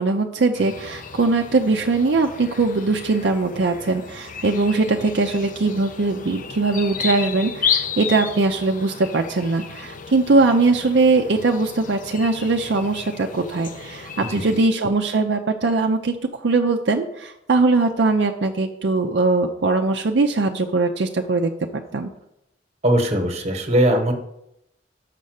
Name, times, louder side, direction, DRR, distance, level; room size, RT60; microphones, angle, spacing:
voice 1, 0.0-22.1, right 3 dB, 70° right, 3 dB, 0.6 m, -21 dB
sound 1, 0.5-14.7, left 7 dB, 45° left, 0.6 m, -33 dB
voice 2, 22.8-24.1, right 1 dB, 35° right, 5 dB, 1.2 m, -19 dB
6.7 x 5.4 x 6.4 m, 0.82 s
head